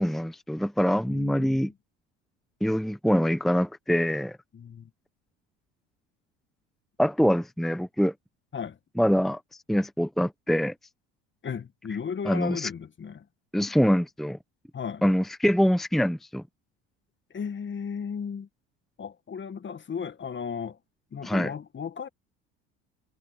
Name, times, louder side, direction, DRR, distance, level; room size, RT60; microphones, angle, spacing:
voice 1, 0.0-1.7 2.6-4.4 7.0-8.1 9.0-9.4 9.7-10.7 12.2-12.7 13.5-14.4 15.0-16.4 21.2-21.5, equal, ahead, 1.0 m, -24 dB
voice 2, 1.1-1.7 4.5-4.9 8.5-8.8 11.4-13.3 14.7-15.0 17.3-18.5 19.0-20.8 21.1-22.1, left 6 dB, 35° left, 1.9 m, -35 dB
supercardioid pair, 80°, 35 cm